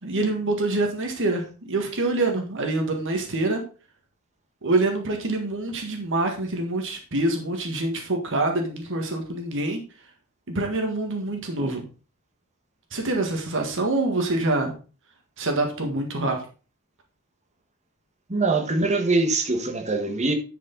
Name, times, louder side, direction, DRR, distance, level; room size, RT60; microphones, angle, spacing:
voice 1, 0.0-3.6 4.6-9.8 10.5-11.8 12.9-14.7 15.4-16.4, right 2 dB, 60° right, 1.7 m, -25 dB
voice 2, 18.3-20.3, right 3 dB, 30° right, 1.4 m, -23 dB
10.5 x 5.2 x 3.9 m
head